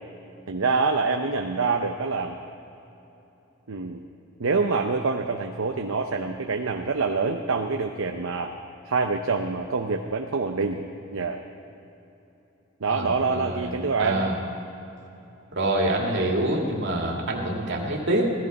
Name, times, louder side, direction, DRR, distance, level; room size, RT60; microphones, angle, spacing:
voice 1, 0.5-2.4 3.7-4.0 4.4-8.5 8.8-10.8 11.1-11.4 12.8-14.2, right 4 dB, 80° right, 3 dB, 0.7 m, -26 dB
voice 2, 12.9-13.7 14.0-14.4 15.5-18.3, right 1 dB, 60° right, 0 dB, 2.4 m, -26 dB
17.5 x 14.0 x 5.4 m, 3.0 s
head